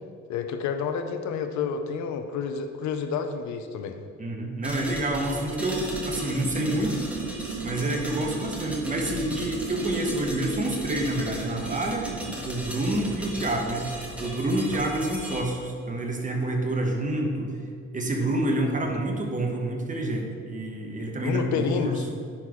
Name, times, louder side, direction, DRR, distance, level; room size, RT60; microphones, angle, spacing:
voice 1, 0.3-4.0 21.2-22.1, left 6 dB, 70° left, 7 dB, 0.6 m, -29 dB
voice 2, 4.2-7.1 7.6-12.1 12.4-13.9 14.2-17.5 17.9-22.0, right 1 dB, 25° right, 1 dB, 1.0 m, -28 dB
sound 1, 4.6-15.4, equal, 5° right, 1.3 m, -38 dB
sound 2, 5.6-12.4, right 5 dB, 70° right, 0.6 m, -36 dB
9.8 x 3.9 x 3.0 m, 2.3 s
cardioid pair, 90°, 30 cm